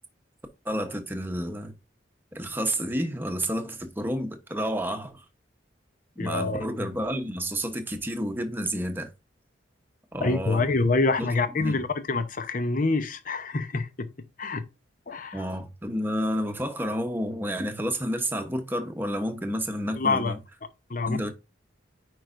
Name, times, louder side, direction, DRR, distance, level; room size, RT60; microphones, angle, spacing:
voice 1, 0.6-1.7 2.3-5.2 6.2-9.1 10.1-10.6 11.2-11.3 11.6-11.8 15.3-20.4 21.0-21.3, equal, 10° right, 1.0 m, -30 dB
voice 2, 6.2-6.7 10.2-14.1 14.4-14.6 15.1-15.4 20.0-20.3 20.9-21.2, left 3 dB, 45° left, 0.8 m, -26 dB
9.3 x 4.7 x 2.6 m
head